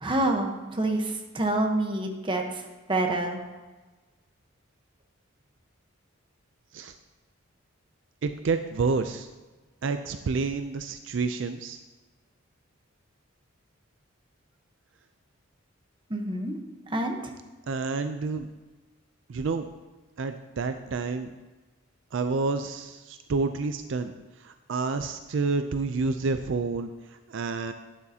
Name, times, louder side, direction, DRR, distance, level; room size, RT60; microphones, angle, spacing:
voice 1, 0.0-3.4 16.1-16.6 16.9-17.3, right 2 dB, 25° right, 3 dB, 1.0 m, -27 dB
voice 2, 8.2-9.3 9.8-11.8 17.7-18.5 19.3-19.7 20.2-21.3 22.1-27.7, right 4 dB, 60° right, 8 dB, 0.4 m, -29 dB
12.0 x 9.6 x 2.8 m, 1.2 s
head